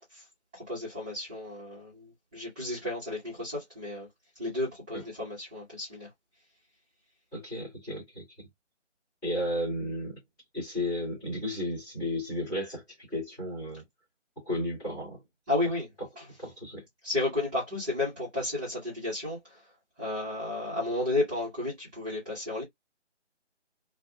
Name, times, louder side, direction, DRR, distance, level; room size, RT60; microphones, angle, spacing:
voice 1, 0.5-4.1 4.4-6.1 15.5-15.9 16.2-16.3 17.0-19.6 20.0-22.6, left 2 dB, 10° right, 1.1 m, -32 dB
voice 2, 7.3-8.2 9.2-10.2 10.5-12.8 13.1-13.8 14.4-15.2 16.4-16.8, left 1 dB, 5° left, 1.5 m, -33 dB
3.3 x 2.3 x 2.2 m
figure-of-eight pair, 160°, 37 cm